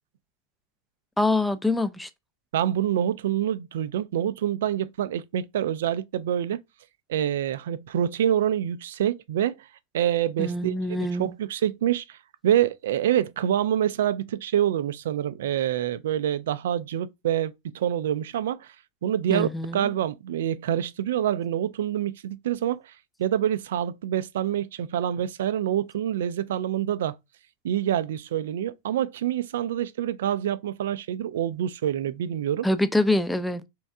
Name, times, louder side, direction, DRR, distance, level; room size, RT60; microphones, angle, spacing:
voice 1, 1.2-2.1 10.4-11.3 19.3-19.9 32.6-33.7, left 1 dB, 5° left, 0.4 m, -25 dB
voice 2, 2.5-6.6 7.1-9.7 9.9-10.7 11.0-12.2 12.4-18.7 19.0-22.9 23.2-27.1 27.6-32.7, right 10 dB, 60° right, 0.4 m, -26 dB
3.4 x 3.0 x 3.6 m
figure-of-eight pair, 90°, 0 cm